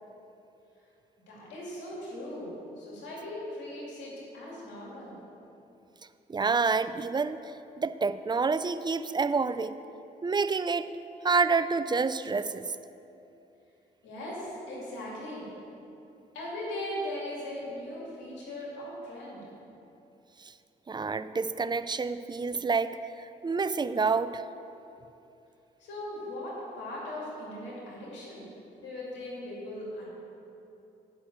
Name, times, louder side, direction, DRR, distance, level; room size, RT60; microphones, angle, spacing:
voice 1, 1.3-5.1 14.0-15.5 16.3-19.4 25.8-28.4 28.8-30.1, left 1 dB, 85° left, -5 dB, 2.5 m, -39 dB
voice 2, 6.3-7.4 7.8-9.8 10.2-10.9 11.2-12.6 20.9-23.0 23.4-24.4, right 4 dB, 25° right, 13 dB, 0.4 m, -28 dB
8.0 x 5.9 x 8.0 m, 2.8 s
supercardioid pair, 60°, 18 cm